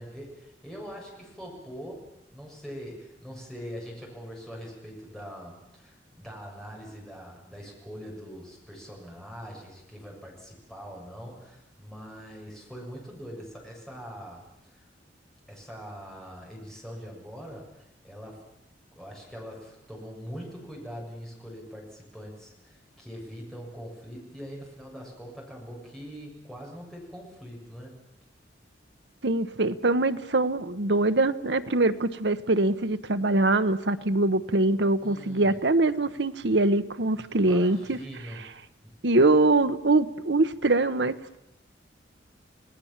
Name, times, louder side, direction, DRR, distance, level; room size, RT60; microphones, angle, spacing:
voice 1, 0.0-2.0 2.3-14.4 14.7-14.9 15.5-18.4 18.9-28.1 35.0-35.5 37.4-38.5 38.8-38.9, equal, 5° left, -2 dB, 7.3 m, -42 dB
voice 2, 29.2-38.0 39.0-41.4, right 2 dB, 70° right, 11 dB, 1.1 m, -23 dB
28.5 x 18.5 x 7.4 m, 0.89 s
head